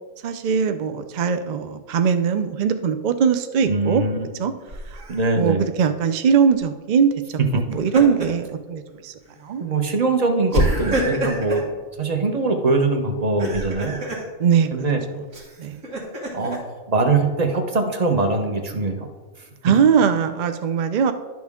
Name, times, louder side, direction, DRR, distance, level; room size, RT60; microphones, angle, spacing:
voice 1, 0.2-4.0 4.4-4.5 4.9-5.0 5.4-7.1 7.5-9.1 9.4-9.6 14.4-14.9 15.6-15.8 19.6-21.1, right 7 dB, 60° right, 8 dB, 0.4 m, -20 dB
voice 2, 3.6-4.2 5.1-5.6 7.5-7.6 9.6-11.7 12.0-14.0 14.7-15.0 16.3-19.1, right 3 dB, 35° right, 4 dB, 0.9 m, -22 dB
Laughter, 4.7-5.2 7.5-8.5 8.9-9.1 10.5-11.7 13.2-14.3 15.3-16.6, right 1 dB, 85° right, 2.1 m, -26 dB
11.0 x 6.1 x 3.6 m, 1.4 s
omnidirectional pair, 1.4 m